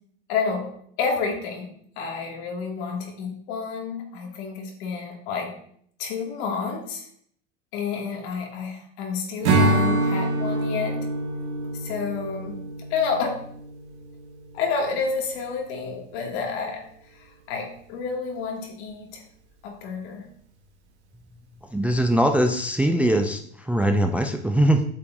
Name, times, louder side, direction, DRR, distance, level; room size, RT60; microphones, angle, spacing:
voice 1, 0.3-0.7 1.0-1.7 2.0-5.5 6.0-7.1 7.7-11.0 11.7-12.6 12.9-13.4 14.5-19.2 19.6-20.3, left 5 dB, 70° left, 0 dB, 2.4 m, -29 dB
Strum, 9.4-14.9, right 2 dB, 85° right, 1.9 m, -26 dB
voice 2, 21.7-23.4 23.7-24.9, right 1 dB, 5° right, 5 dB, 0.4 m, -21 dB
8.4 x 6.9 x 2.7 m, 0.64 s
hypercardioid pair, 105°, 33 cm